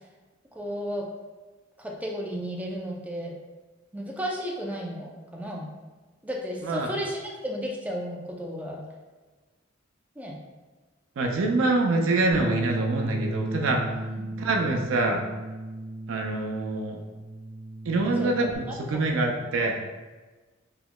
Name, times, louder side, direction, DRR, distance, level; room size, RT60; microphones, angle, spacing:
voice 1, 0.5-1.1 1.8-3.4 3.9-5.7 6.2-8.8 10.2-10.4 14.0-14.4 18.2-18.3 18.7-19.0, equal, 10° right, -2 dB, 0.4 m, -34 dB
voice 2, 11.2-13.8 14.4-15.2 16.1-17.0 17.9-19.8, right 2 dB, 85° right, 2 dB, 0.4 m, -25 dB
Bass guitar, 12.3-18.6, right 1 dB, 60° right, 1.2 m, -34 dB
4.0 x 2.8 x 2.2 m, 1.3 s
head